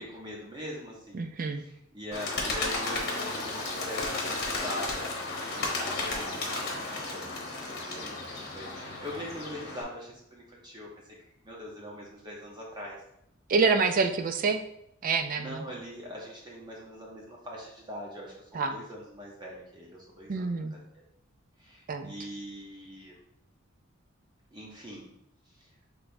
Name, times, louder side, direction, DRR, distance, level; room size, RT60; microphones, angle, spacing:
voice 1, 0.0-1.2 1.6-5.1 5.4-10.9 11.4-13.0 15.4-21.0 21.6-23.1 24.5-25.1 25.5-25.7, equal, 20° right, -3 dB, 0.8 m, -42 dB
voice 2, 1.1-1.6 13.5-14.6 15.0-15.6 18.5-18.8 20.3-20.7 21.9-22.1, right 4 dB, 45° right, 7 dB, 0.4 m, -27 dB
Bird, 2.1-9.8, left 2 dB, 55° left, 1.0 m, -33 dB
6.0 x 3.3 x 2.6 m, 0.76 s
head